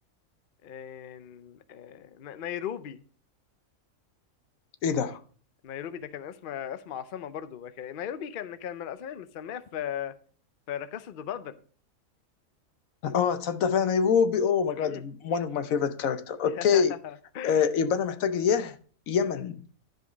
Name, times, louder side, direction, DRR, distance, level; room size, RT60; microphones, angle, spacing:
voice 1, 0.6-3.0 5.6-10.2 10.7-11.5 14.8-15.0 16.4-17.6, left 9 dB, 55° left, 0.6 m, -37 dB
voice 2, 4.8-5.2 13.0-16.9 17.4-18.7 19.1-19.6, left 7 dB, 80° left, 1.2 m, -25 dB
11.0 x 5.2 x 5.0 m
omnidirectional pair, 1.4 m